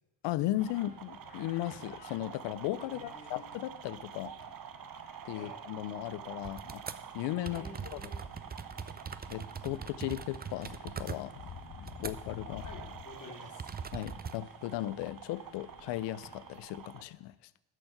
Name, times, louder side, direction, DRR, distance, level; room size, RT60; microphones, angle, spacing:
voice 1, 0.2-4.3 5.2-6.8 7.1-7.6 7.9-8.0 9.3-11.3 12.0-12.6 13.9-17.3, left 15 dB, 90° left, 18 dB, 0.5 m, -36 dB
sound 1, 0.5-16.5, left 7 dB, 65° left, 1.2 m, -53 dB
sound 2, 0.6-17.0, right 9 dB, 55° right, 0.8 m, -48 dB
voice 2, 2.8-3.5 5.3-5.6 7.5-8.4 11.9-13.7, left 2 dB, 45° left, 0 dB, 2.8 m, -51 dB
sound 3, 6.4-7.0 7.5-12.4 12.7-12.9 13.6-14.4, right 6 dB, 25° right, 0.6 m, -42 dB
12.5 x 4.4 x 7.7 m, 0.99 s
cardioid pair, 75°, 41 cm